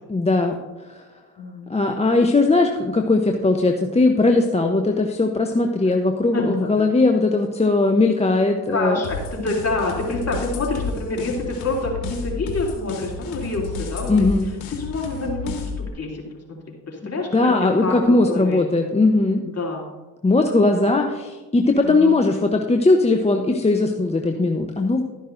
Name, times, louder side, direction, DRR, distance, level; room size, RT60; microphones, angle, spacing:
voice 1, 0.1-0.6 0.9-1.0 1.7-9.0 14.1-14.5 17.0-19.4 20.2-25.0, left 2 dB, 15° left, 3 dB, 0.8 m, -19 dB
voice 2, 1.4-1.7 5.8-5.9 6.3-6.9 8.7-14.3 14.8-16.6 16.9-18.6 19.4-19.9 21.8-22.2, left 2 dB, 35° left, -1 dB, 3.0 m, -27 dB
sound 1, 9.0-15.9, left 5 dB, 85° left, 1.3 m, -31 dB
12.0 x 10.0 x 2.6 m, 1.2 s
hypercardioid pair, 55°, 43 cm